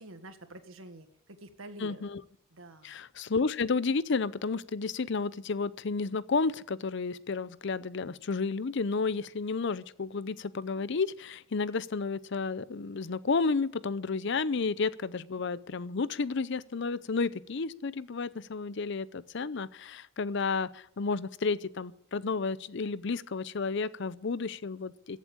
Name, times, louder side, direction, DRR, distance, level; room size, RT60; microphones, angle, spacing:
voice 1, 0.0-2.0 2.5-2.9 14.6-14.7, right 2 dB, 80° right, 8 dB, 1.7 m, -48 dB
voice 2, 1.8-2.2 2.8-25.2, left 4 dB, 60° left, 18 dB, 0.6 m, -31 dB
14.5 x 8.2 x 8.7 m, 0.70 s
head